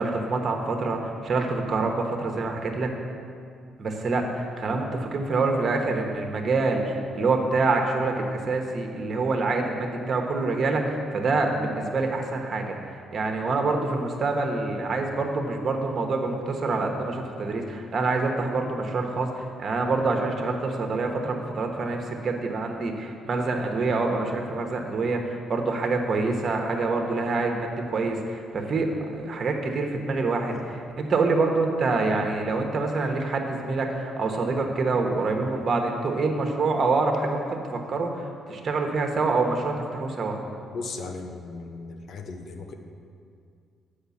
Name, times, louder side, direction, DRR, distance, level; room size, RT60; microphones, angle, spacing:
voice 1, 0.0-2.9 3.8-12.8 13.1-40.4, right 3 dB, 45° right, 3 dB, 1.0 m, -26 dB
voice 2, 40.7-42.7, left 3 dB, 65° left, 5 dB, 0.8 m, -37 dB
7.8 x 5.0 x 7.1 m, 2.3 s
cardioid pair, 90°, 0 cm